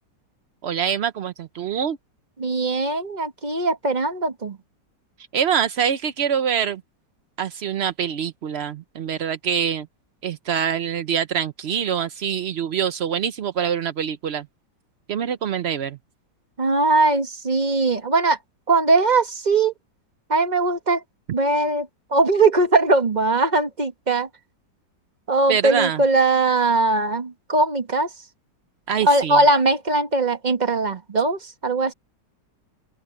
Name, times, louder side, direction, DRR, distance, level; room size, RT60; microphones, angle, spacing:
voice 1, 0.6-2.0 5.3-6.8 7.4-9.9 10.2-14.5 15.1-16.0 25.5-26.0 28.9-29.4, right 8 dB, 65° right, 0.6 m, -24 dB
voice 2, 2.4-4.6 16.6-18.4 18.7-19.7 20.3-21.0 21.3-24.3 25.3-28.1 29.0-31.9, right 3 dB, 25° right, 1.5 m, -20 dB
open air
omnidirectional pair, 1.9 m